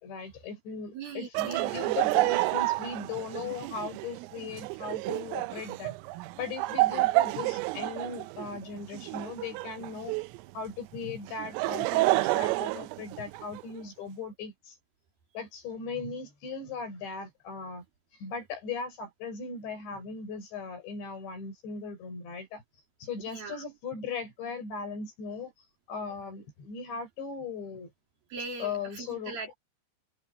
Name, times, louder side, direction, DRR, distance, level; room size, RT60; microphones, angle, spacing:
voice 1, 0.0-6.0 6.4-10.1 10.5-14.8 15.3-17.8 18.1-22.6 23.0-25.5 25.9-27.9 28.6-29.4, left 5 dB, 60° left, 8.1 m, -38 dB
voice 2, 0.9-2.0 23.2-23.6 28.3-29.5, right 4 dB, 50° right, 4.3 m, -40 dB
Laughter, 1.3-10.4 11.3-13.6, right 20 dB, 80° right, 3.1 m, -29 dB
omnidirectional pair, 5.9 m